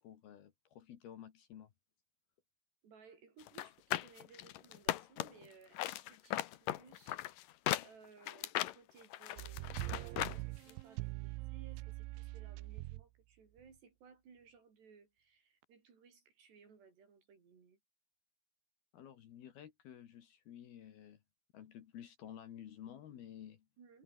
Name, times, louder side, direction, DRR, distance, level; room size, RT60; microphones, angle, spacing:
voice 1, 0.0-1.7 18.9-21.2 21.5-23.7, left 10 dB, 60° left, 3.4 m, -52 dB
voice 2, 2.8-7.2 7.8-17.8 23.8-24.0, right 5 dB, 60° right, 7.3 m, -61 dB
sound 1, 3.5-5.5 5.8-10.4 10.7-10.8, left 14 dB, 85° left, 1.9 m, -38 dB
sound 2, 9.4-13.1 13.6-13.7, right 20 dB, 80° right, 3.1 m, -43 dB
omnidirectional pair, 5.5 m